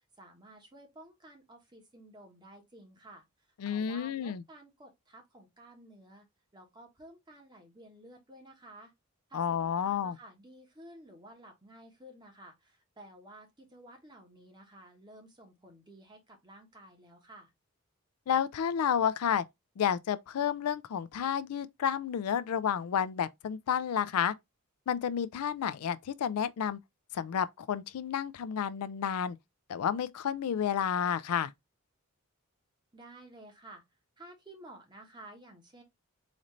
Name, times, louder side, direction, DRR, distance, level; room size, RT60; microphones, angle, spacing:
voice 1, 0.2-6.3 6.5-8.9 9.3-17.5 32.9-33.8 34.2-35.8, right 1 dB, 20° right, 1.1 m, -53 dB
voice 2, 3.6-4.4 9.3-10.2 18.3-19.4 19.8-24.3 24.9-26.8 27.1-29.4 29.7-31.5, left 8 dB, 90° left, 0.4 m, -31 dB
4.1 x 2.5 x 3.1 m
head